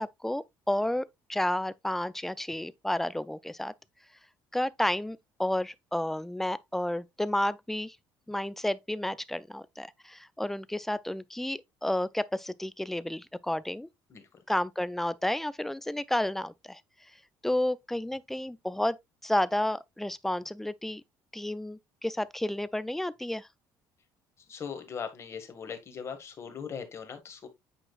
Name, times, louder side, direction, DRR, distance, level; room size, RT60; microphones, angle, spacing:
voice 1, 0.0-3.7 4.5-8.0 8.3-13.9 14.5-16.8 17.4-19.0 19.2-21.0 21.3-23.5, left 1 dB, 5° left, 0.3 m, -31 dB
voice 2, 24.5-27.5, left 6 dB, 35° left, 1.6 m, -39 dB
8.7 x 4.9 x 2.4 m
cardioid pair, 140°, 8 cm